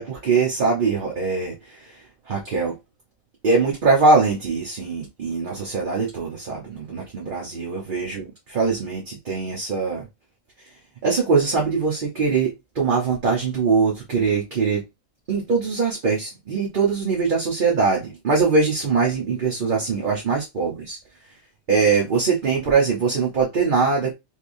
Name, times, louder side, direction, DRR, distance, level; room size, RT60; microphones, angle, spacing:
voice 1, 0.0-1.5 2.3-2.7 3.4-10.1 11.0-14.8 15.3-21.0 21.7-24.1, right 4 dB, 45° right, 0.9 m, -22 dB
3.4 x 3.3 x 2.6 m
omnidirectional pair, 1.4 m